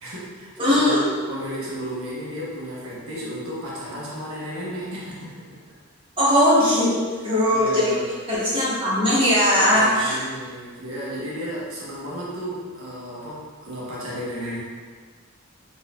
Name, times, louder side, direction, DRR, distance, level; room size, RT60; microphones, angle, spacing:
voice 1, 0.0-1.0 1.3-5.5 7.5-8.1 9.7-14.6, equal, 85° right, -7 dB, 1.1 m, -33 dB
voice 2, 0.6-1.1 6.2-6.9 7.2-8.0 8.3-10.2, equal, 25° right, -10 dB, 1.4 m, -19 dB
4.1 x 3.9 x 2.4 m, 1.5 s
head